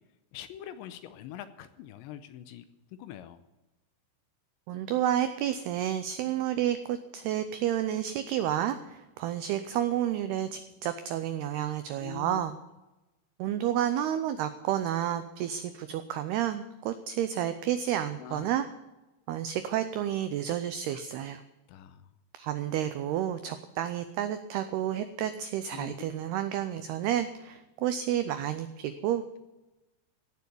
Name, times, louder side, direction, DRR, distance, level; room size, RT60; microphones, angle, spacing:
voice 1, 0.3-2.6 3.0-3.4 12.0-12.4 18.0-18.5 20.9-21.0 21.7-22.1 25.7-26.2, left 12 dB, 80° left, 12 dB, 2.8 m, -44 dB
voice 2, 4.7-12.5 13.4-18.7 19.3-21.4 22.3-29.4, right 11 dB, 90° right, 10 dB, 2.2 m, -30 dB
16.5 x 7.0 x 9.7 m, 1.0 s
omnidirectional pair, 5.5 m